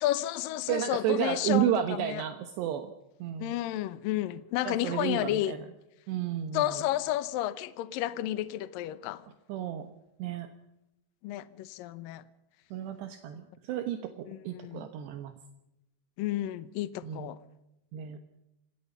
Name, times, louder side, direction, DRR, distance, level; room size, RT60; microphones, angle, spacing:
voice 1, 0.0-2.2 3.4-5.5 6.5-9.2 11.2-12.2 14.3-14.8 16.2-17.4, left 14 dB, 80° left, 2.0 m, -31 dB
voice 2, 0.7-2.9 3.2-3.5 4.6-5.6 6.1-6.8 9.5-9.9 10.2-10.5 12.7-15.3 17.0-17.3 17.9-18.2, right 11 dB, 75° right, 3.2 m, -32 dB
26.0 x 19.0 x 5.5 m
omnidirectional pair, 5.2 m